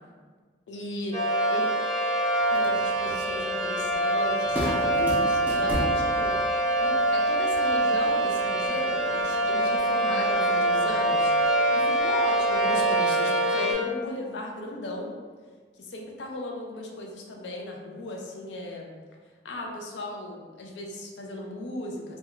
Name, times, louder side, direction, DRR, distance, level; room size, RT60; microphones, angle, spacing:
voice 1, 0.7-1.7 2.5-6.4 6.8-11.3 11.7-15.1 15.8-18.9 19.4-22.2, left 1 dB, 75° left, 0 dB, 0.4 m, -36 dB
sound 1, 1.1-13.7, right 1 dB, 20° left, 0.8 m, -24 dB
sound 2, 2.4-13.0, equal, 10° right, 0.3 m, -39 dB
2.3 x 2.2 x 2.9 m, 1.5 s
head